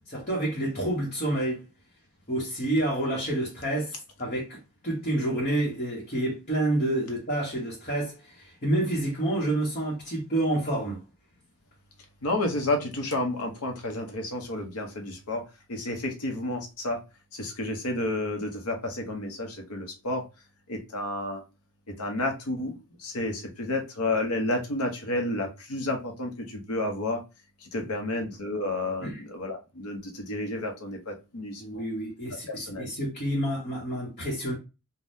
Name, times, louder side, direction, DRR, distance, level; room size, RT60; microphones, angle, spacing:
voice 1, 0.1-1.6 2.3-11.0 29.0-29.2 31.6-34.5, right 1 dB, 35° left, 0.9 m, -29 dB
voice 2, 12.2-15.4 15.7-17.0 17.3-20.2 20.7-21.4 21.9-22.7 23.0-27.2 27.6-31.8 32.5-32.8, left 2 dB, 80° left, 0.8 m, -31 dB
3.4 x 2.2 x 2.6 m
head